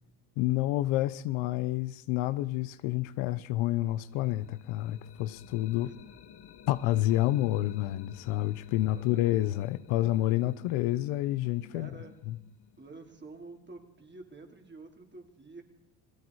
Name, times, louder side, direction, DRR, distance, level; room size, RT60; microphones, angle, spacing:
voice 1, 0.4-5.9 6.7-11.9 12.3-12.4, left 15 dB, 85° left, 1.1 m, -29 dB
sound 1, 3.9-13.7, left 9 dB, 55° left, 1.9 m, -54 dB
voice 2, 8.9-9.3 11.7-12.2 12.8-15.6, right 3 dB, 20° right, 3.8 m, -49 dB
29.0 x 18.5 x 4.9 m
supercardioid pair, 95°, 47 cm